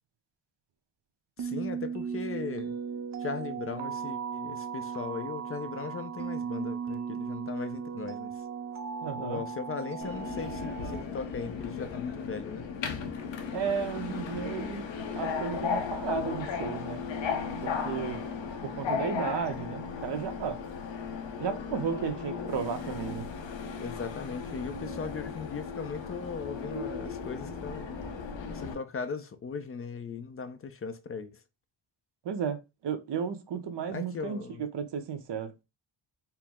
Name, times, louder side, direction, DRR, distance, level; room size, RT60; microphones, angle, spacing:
voice 1, 1.4-2.8 3.2-8.3 9.2-12.6 23.8-28.0 28.5-31.4 33.9-34.6, left 5 dB, 30° left, 0.5 m, -38 dB
sound 1, 1.4-11.0, right 6 dB, 40° right, 0.4 m, -36 dB
voice 2, 9.0-9.4 13.5-14.9 15.1-17.0 17.6-18.2 18.6-20.6 21.4-23.3 32.2-34.4 34.7-35.5, right 7 dB, 60° right, 0.8 m, -34 dB
Subway metro underground, 10.0-28.7, left 5 dB, 65° left, 0.8 m, -36 dB
4.5 x 2.0 x 3.5 m
wide cardioid pair, 120°, 47 cm